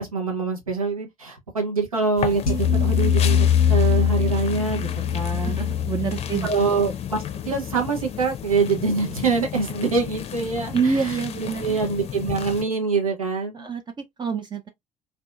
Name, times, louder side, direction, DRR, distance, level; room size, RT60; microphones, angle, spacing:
voice 1, 0.0-5.7 6.4-13.7, right 4 dB, 85° right, 0.7 m, -25 dB
sound 1, 2.2-12.6, left 9 dB, 35° left, 0.5 m, -34 dB
sound 2, 2.5-7.7, left 9 dB, 85° left, 0.6 m, -22 dB
voice 2, 5.3-6.5 10.7-11.6 13.5-13.8 14.2-14.7, right 6 dB, 25° right, 0.4 m, -26 dB
2.5 x 2.2 x 2.4 m
figure-of-eight pair, 55°, 18 cm